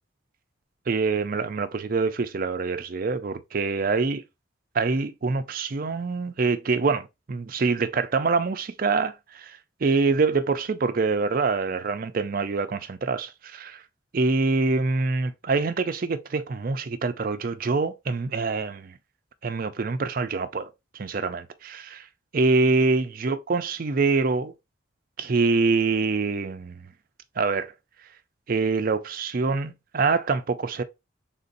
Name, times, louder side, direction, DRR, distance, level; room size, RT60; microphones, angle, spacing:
voice 1, 0.9-4.2 4.7-13.8 14.1-19.0 19.4-22.1 22.3-24.5 25.2-26.9 27.4-27.7 28.5-30.8, right 4 dB, 45° right, 0.4 m, -25 dB
3.7 x 2.6 x 3.9 m
head